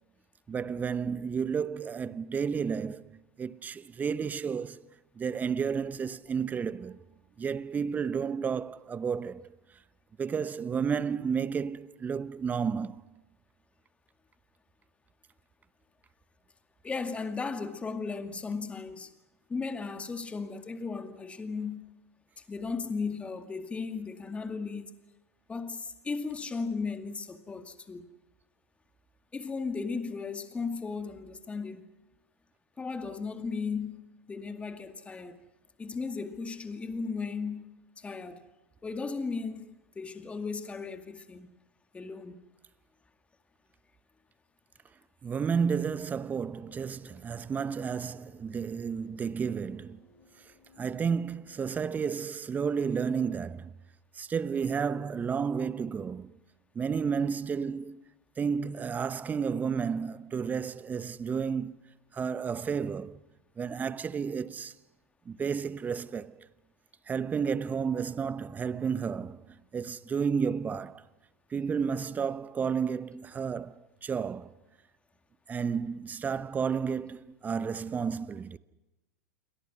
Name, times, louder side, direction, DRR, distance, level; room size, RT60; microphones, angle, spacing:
voice 1, 0.5-4.8 5.2-7.0 7.4-9.5 10.2-13.0 45.2-50.0 50.8-53.7 54.1-56.3 56.7-58.0 58.4-61.8 62.1-63.2 63.6-64.7 65.3-66.5 67.1-69.4 69.7-71.1 71.5-74.5 75.5-78.6, right 6 dB, 20° right, 0.9 m, -32 dB
voice 2, 16.8-19.1 19.5-21.8 22.5-24.9 25.5-28.0 29.3-31.8 32.8-34.0 34.3-35.4 35.8-37.7 38.0-38.5 38.8-39.7 40.0-41.5 41.9-42.4, left 4 dB, 15° left, 2.2 m, -36 dB
sound 1, 46.5-52.3, left 3 dB, 30° left, 7.1 m, -62 dB
28.0 x 24.0 x 6.3 m
figure-of-eight pair, 95°, 8 cm